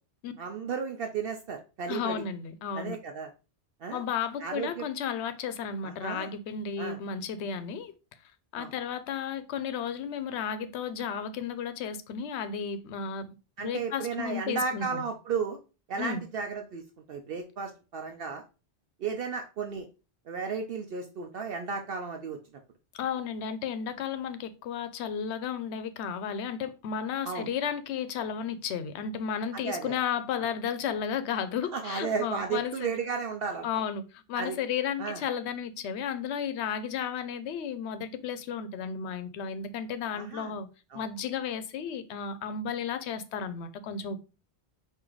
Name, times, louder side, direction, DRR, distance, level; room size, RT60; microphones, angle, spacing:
voice 1, 0.4-2.2 2.7-3.3 3.8-4.0 4.4-4.9 5.8-6.3 6.8-7.0 8.6-8.7 13.6-15.6 15.9-16.8 17.1-18.4 19.0-19.9 20.3-22.4 27.2-27.5 29.5-30.0 31.7-33.8 34.3-34.6 35.0-35.2 40.2-40.5 40.9-41.0, right 5 dB, 65° right, 0.7 m, -34 dB
voice 2, 1.9-3.0 3.9-7.9 8.5-15.0 16.0-16.2 22.9-32.9 33.6-40.7 40.9-44.2, left 7 dB, 75° left, 0.8 m, -33 dB
4.6 x 2.6 x 3.8 m
omnidirectional pair, 1.2 m